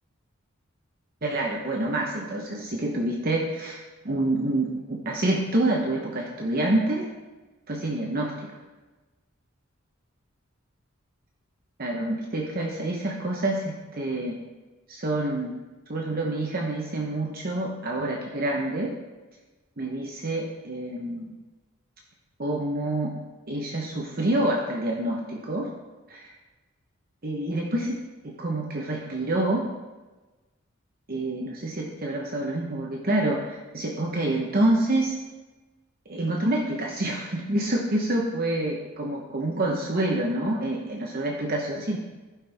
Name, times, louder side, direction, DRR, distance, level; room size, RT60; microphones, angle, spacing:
voice 1, 1.2-3.8 4.0-7.0 7.7-8.5 11.8-14.3 14.9-15.5 15.9-18.9 19.8-21.4 22.4-23.1 23.5-25.7 26.1-26.3 27.2-28.0 28.2-29.6 31.1-35.1 36.1-42.0, right 1 dB, 45° right, -1 dB, 0.9 m, -27 dB
16.0 x 5.3 x 3.5 m, 1.2 s
head